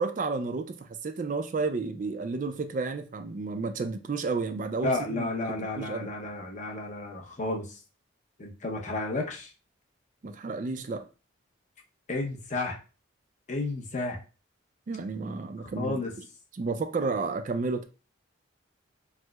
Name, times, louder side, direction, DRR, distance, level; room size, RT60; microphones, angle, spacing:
voice 1, 0.0-5.3 5.8-6.1 10.2-11.1 14.9-16.0 16.6-17.8, right 4 dB, 40° right, 0.3 m, -31 dB
voice 2, 4.8-7.8 8.4-9.5 12.1-12.8 13.5-14.2 15.7-16.1, left 2 dB, 40° left, 0.7 m, -32 dB
4.5 x 2.0 x 2.2 m
head